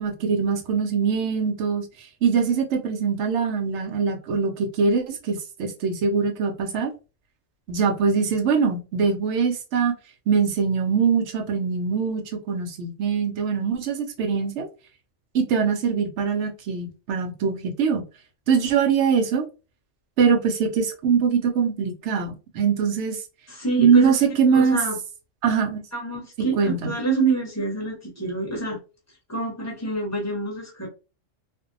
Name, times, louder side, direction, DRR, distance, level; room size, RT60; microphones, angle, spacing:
voice 1, 0.0-6.9 7.7-9.9 10.3-14.7 15.3-18.1 18.5-19.5 20.2-23.2 23.8-24.8 25.4-25.8 26.6-26.9, right 6 dB, 70° right, 0.9 m, -22 dB
voice 2, 23.5-24.2 24.5-25.0 25.9-28.8 29.3-30.9, right 3 dB, 15° left, 0.9 m, -27 dB
2.5 x 2.1 x 2.6 m
omnidirectional pair, 1.3 m